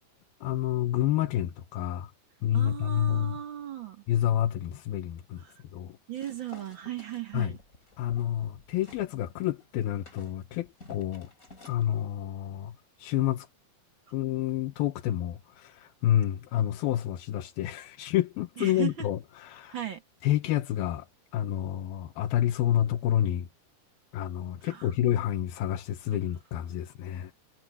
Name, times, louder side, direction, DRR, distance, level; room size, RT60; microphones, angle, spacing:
voice 1, 0.4-2.1 2.4-3.4 4.1-5.4 5.7-6.0 7.3-7.6 8.0-11.3 11.7-13.5 14.1-19.8 20.2-21.1 21.3-23.5 24.1-27.3, left 12 dB, 85° left, 2.9 m, -29 dB
voice 2, 2.5-4.0 5.4-5.5 6.1-7.6 18.6-19.1 19.7-20.0 24.6-25.1, right 11 dB, 65° right, 1.2 m, -37 dB
sound 1, 6.1-9.1 9.4-11.9, left 2 dB, 20° left, 4.3 m, -53 dB
omnidirectional pair, 4.3 m